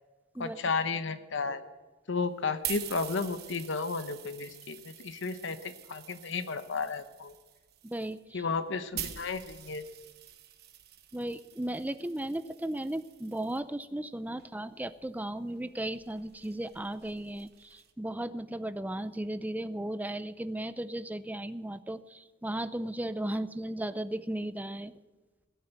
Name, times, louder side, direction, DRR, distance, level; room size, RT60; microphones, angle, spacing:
voice 1, 0.4-1.6 2.1-7.3 8.3-9.8, left 4 dB, 65° left, 11 dB, 0.9 m, -33 dB
sound 1, 2.2-13.6 14.4-17.9, right 11 dB, 55° right, 1.3 m, -46 dB
voice 2, 7.8-8.4 11.1-24.9, right 1 dB, 10° right, 12 dB, 0.6 m, -36 dB
17.5 x 9.3 x 8.0 m, 1.3 s
head